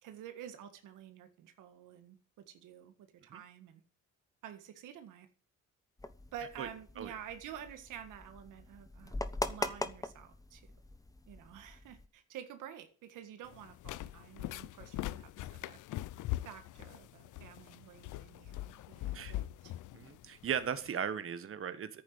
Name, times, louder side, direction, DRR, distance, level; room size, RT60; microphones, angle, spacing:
voice 1, 0.0-3.8 4.4-5.3 6.3-10.7 11.3-15.8 16.4-19.7, right 9 dB, 90° right, 8 dB, 1.8 m, -50 dB
sound 1, 6.0-12.1, left 2 dB, 10° left, 1.0 m, -42 dB
sound 2, 13.4-20.9, left 15 dB, 80° left, 0.6 m, -42 dB
voice 2, 19.9-22.0, right 8 dB, 45° right, 11 dB, 1.2 m, -37 dB
10.5 x 9.1 x 7.7 m, 0.42 s
cardioid pair, 90°, 30 cm